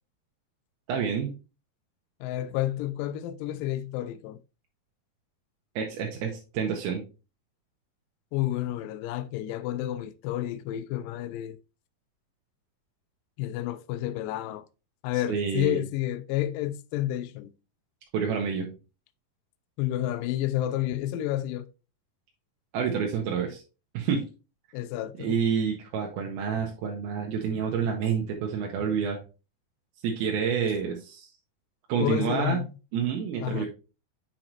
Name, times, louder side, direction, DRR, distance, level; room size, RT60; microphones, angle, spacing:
voice 1, 0.9-1.3 5.8-7.0 15.3-15.8 18.1-18.7 22.7-23.6 23.9-24.3 25.2-29.2 30.0-31.3 31.9-32.6 32.9-33.7, right 6 dB, 85° right, 2.8 m, -28 dB
voice 2, 2.2-4.4 8.3-11.6 13.4-14.7 15.0-17.5 19.8-21.7 24.7-25.3 32.0-32.6 33.4-33.7, left 13 dB, 80° left, 2.0 m, -30 dB
7.6 x 5.0 x 2.9 m
omnidirectional pair, 4.4 m